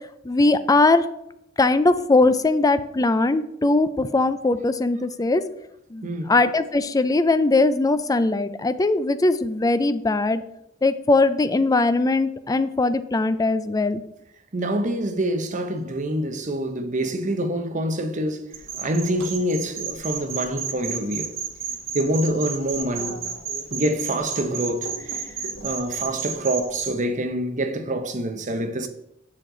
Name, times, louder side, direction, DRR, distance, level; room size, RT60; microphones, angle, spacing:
voice 1, 0.2-1.0 1.6-5.4 5.9-10.4 10.8-14.0, left 2 dB, 20° left, 0.4 m, -20 dB
voice 2, 6.0-6.3 14.5-18.5 18.8-21.3 21.9-23.2 23.7-28.9, right 1 dB, 40° right, 0.8 m, -26 dB
sound 1, 18.5-26.9, right 6 dB, 75° right, 1.2 m, -32 dB
7.5 x 6.5 x 3.8 m
head